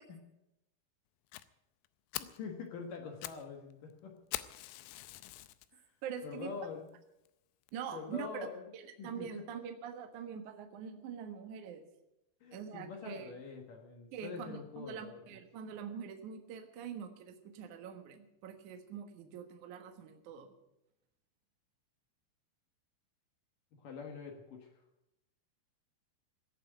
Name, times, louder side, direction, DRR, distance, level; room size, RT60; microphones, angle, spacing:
Fire, 1.3-1.4 1.8-1.9 2.1-2.4 3.0-3.4 3.7-3.8 4.3-5.7 6.2-6.3 6.9-7.0 7.3-7.4 7.7-7.8, left 16 dB, 80° left, 2.6 m, -42 dB
voice 1, 2.2-4.2 5.7-5.9 6.2-6.9 7.9-8.7 9.0-9.6 12.4-15.4 23.8-24.7, left 5 dB, 65° left, 2 dB, 2.2 m, -45 dB
voice 2, 6.0-6.5 7.7-8.3 8.7-11.8 12.5-13.3 14.1-20.5, right 7 dB, 75° right, 5 dB, 1.8 m, -44 dB
17.0 x 7.6 x 10.0 m, 0.88 s
omnidirectional pair, 5.8 m